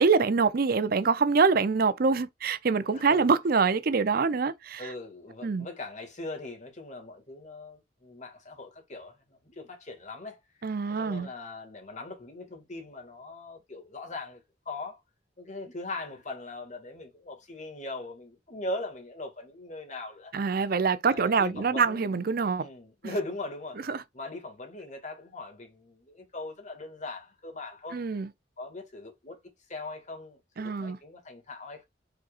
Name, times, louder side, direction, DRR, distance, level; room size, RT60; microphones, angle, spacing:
voice 1, 0.0-4.8 5.4-5.7 10.6-11.3 20.3-22.7 23.0-23.1 23.9-24.0 27.9-28.3 30.6-31.0, right 5 dB, 55° right, 0.5 m, -25 dB
voice 2, 2.9-3.3 4.8-10.4 10.9-14.4 14.7-15.0 15.4-20.3 21.1-22.1 22.6-23.9 24.1-28.0 28.6-29.4 29.7-31.9, left 2 dB, 40° left, 2.0 m, -40 dB
5.1 x 4.2 x 2.4 m
head